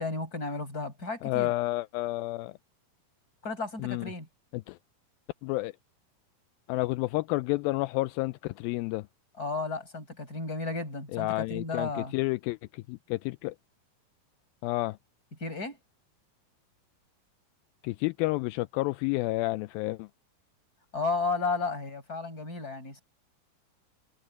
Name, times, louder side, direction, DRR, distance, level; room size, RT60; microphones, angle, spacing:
voice 1, 0.0-1.5 3.4-4.3 9.4-12.1 15.4-15.8 20.9-23.0, left 3 dB, 25° left, 6.9 m, -33 dB
voice 2, 1.2-2.5 3.8-4.1 4.7-4.8 5.4-5.7 6.7-9.1 11.1-13.6 14.6-15.0 17.8-20.1, left 20 dB, 85° left, 2.3 m, -30 dB
omnidirectional pair, 4.2 m